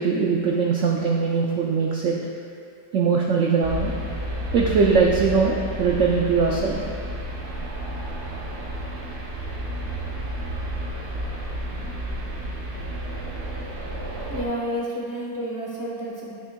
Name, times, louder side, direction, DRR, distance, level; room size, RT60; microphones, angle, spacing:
voice 1, 0.0-2.2 2.9-3.9 4.5-6.8, right 5 dB, 80° right, -2 dB, 0.7 m, -21 dB
sound 1, 3.6-14.5, right 1 dB, 50° right, 0.9 m, -31 dB
voice 2, 14.3-16.3, equal, 15° left, -6 dB, 0.9 m, -30 dB
11.0 x 6.4 x 2.2 m, 2.3 s
omnidirectional pair, 2.0 m